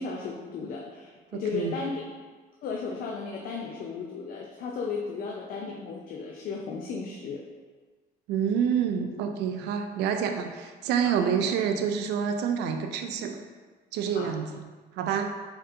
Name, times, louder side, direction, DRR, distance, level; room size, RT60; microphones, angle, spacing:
voice 1, 0.0-2.0 2.6-7.4 11.0-11.2 14.1-14.3 15.3-15.4, left 4 dB, 60° left, 0 dB, 0.5 m, -35 dB
voice 2, 1.3-1.8 8.3-13.4 13.9-14.6 15.0-15.3, right 7 dB, 85° right, 6 dB, 0.4 m, -28 dB
4.2 x 3.8 x 2.6 m, 1.4 s
cardioid pair, 110°, 17 cm